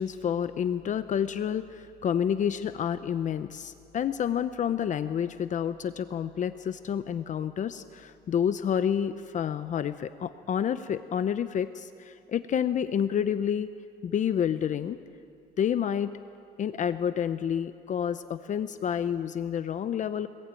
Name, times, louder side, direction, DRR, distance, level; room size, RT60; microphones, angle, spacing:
voice 1, 0.0-13.7 14.0-15.0 15.6-16.1 16.6-20.3, left 8 dB, 45° left, 11 dB, 0.8 m, -29 dB
25.5 x 20.5 x 9.2 m, 2.4 s
cardioid pair, 110°, 17 cm